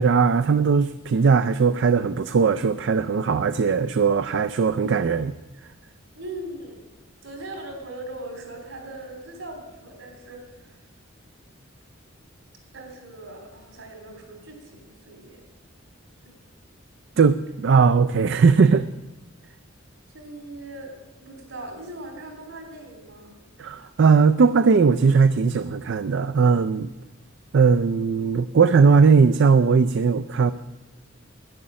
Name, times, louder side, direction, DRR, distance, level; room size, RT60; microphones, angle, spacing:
voice 1, 0.0-5.3 17.2-18.9 23.6-26.9 27.5-30.5, right 5 dB, 60° right, 11 dB, 0.4 m, -19 dB
voice 2, 6.1-6.8 7.2-10.9 12.7-15.4 16.2-16.3 20.1-23.3, right 1 dB, 75° right, 4 dB, 3.4 m, -40 dB
11.0 x 10.5 x 7.6 m, 1.1 s
head